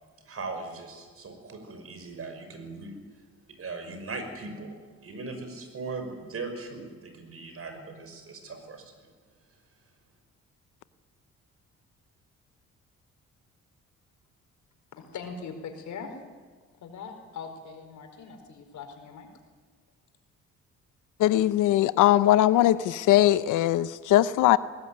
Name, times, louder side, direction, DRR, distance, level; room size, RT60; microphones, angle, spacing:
voice 1, 0.2-3.0 3.6-4.8 5.0-8.9, right 3 dB, 50° right, 6 dB, 5.8 m, -39 dB
voice 2, 14.9-16.1 16.8-19.3, left 5 dB, 70° left, 5 dB, 4.7 m, -41 dB
voice 3, 21.2-24.6, left 14 dB, 90° left, 15 dB, 0.8 m, -20 dB
21.0 x 18.5 x 9.4 m, 1.5 s
cardioid pair, 90°, 30 cm